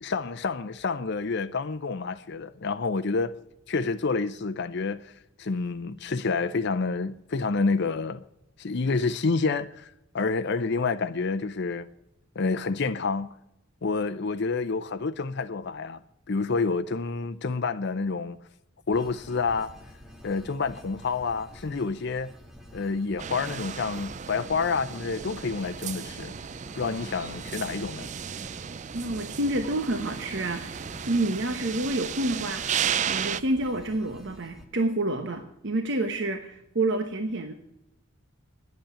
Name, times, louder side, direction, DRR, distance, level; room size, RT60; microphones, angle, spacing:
voice 1, 0.0-3.3 3.7-5.1 5.4-8.2 8.6-11.9 12.4-13.3 13.8-16.0 16.3-18.4 18.9-19.7 20.2-22.3 22.7-26.3 26.7-28.1, left 4 dB, 55° left, 0.6 m, -28 dB
sound 1, 18.9-34.7, equal, ahead, 1.7 m, -49 dB
sound 2, 23.2-33.4, right 8 dB, 35° right, 0.4 m, -34 dB
voice 2, 28.9-32.8 33.1-37.5, right 2 dB, 60° right, 1.1 m, -28 dB
10.5 x 8.2 x 10.0 m
head